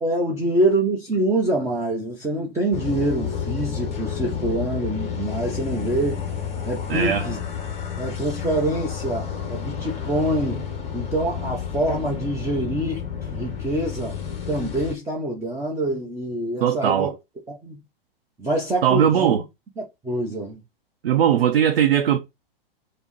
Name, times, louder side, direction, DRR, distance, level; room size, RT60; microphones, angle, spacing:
voice 1, 0.0-6.2 6.6-7.4 8.0-10.6 10.9-14.2 14.5-17.1 17.5-17.8 18.4-19.4 19.8-20.6, right 1 dB, 10° right, 0.8 m, -25 dB
sound 1, 2.7-14.9, left 8 dB, 20° left, 0.8 m, -30 dB
voice 2, 6.9-7.3 16.6-17.1 18.8-19.4 21.0-22.2, right 9 dB, 70° right, 0.6 m, -19 dB
5.2 x 2.1 x 3.0 m
figure-of-eight pair, 110°, 30 cm